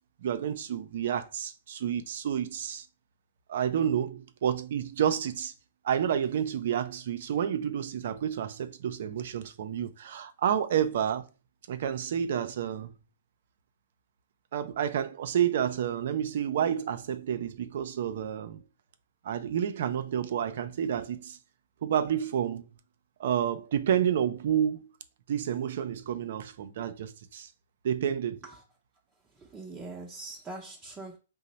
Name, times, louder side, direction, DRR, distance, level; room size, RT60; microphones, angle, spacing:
voice 1, 0.2-2.8 3.5-5.5 5.8-11.3 11.7-13.0 14.5-18.6 19.2-21.4 21.8-22.6 23.2-24.9 25.3-27.5 27.8-28.4, right 9 dB, 60° right, 0.4 m, -29 dB
voice 2, 29.4-31.2, right 3 dB, 15° right, 0.6 m, -42 dB
2.8 x 2.0 x 4.0 m
hypercardioid pair, 135°, 0 cm